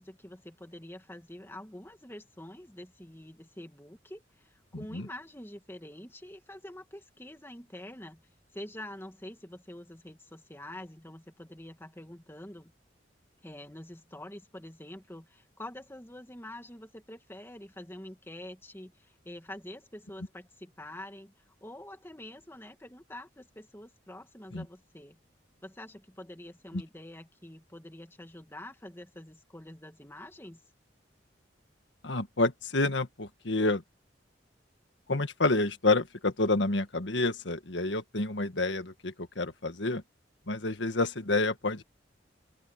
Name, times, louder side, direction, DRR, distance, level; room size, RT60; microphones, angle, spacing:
voice 1, 0.0-8.2 8.5-12.7 13.4-21.3 21.6-25.2 25.6-30.6, left 1 dB, 15° left, 2.4 m, -46 dB
voice 2, 4.7-5.1 24.5-24.6 26.7-26.8 32.0-33.8 35.1-40.0 40.5-41.8, left 2 dB, 75° left, 1.7 m, -29 dB
open air
head